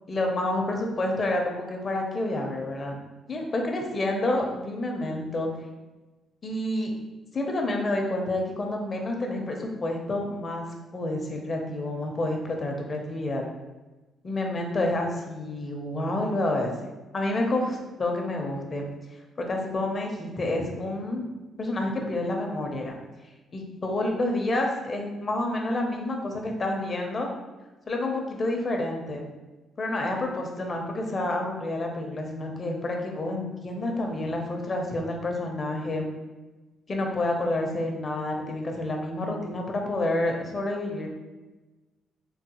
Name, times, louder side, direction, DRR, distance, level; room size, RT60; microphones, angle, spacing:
voice 1, 0.1-3.0 3.3-5.5 6.4-6.9 7.3-10.7 10.9-13.4 14.2-16.7 17.1-18.8 19.4-21.2 21.6-22.9 23.5-27.3 27.9-29.2 29.8-36.1 36.9-41.1, left 1 dB, 40° left, 1 dB, 0.6 m, -29 dB
3.9 x 2.0 x 2.8 m, 1.2 s
cardioid pair, 90°, 0 cm